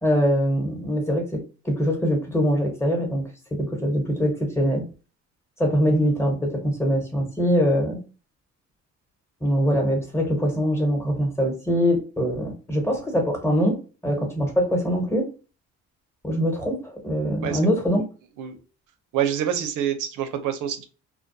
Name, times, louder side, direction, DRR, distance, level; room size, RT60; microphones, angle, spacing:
voice 1, 0.0-4.8 5.6-8.0 9.4-15.3 16.2-18.0, equal, 10° left, 1 dB, 1.0 m, -23 dB
voice 2, 19.1-20.8, right 9 dB, 80° right, 8 dB, 0.6 m, -26 dB
2.2 x 2.2 x 2.6 m, 0.35 s
cardioid pair, 90°, 30 cm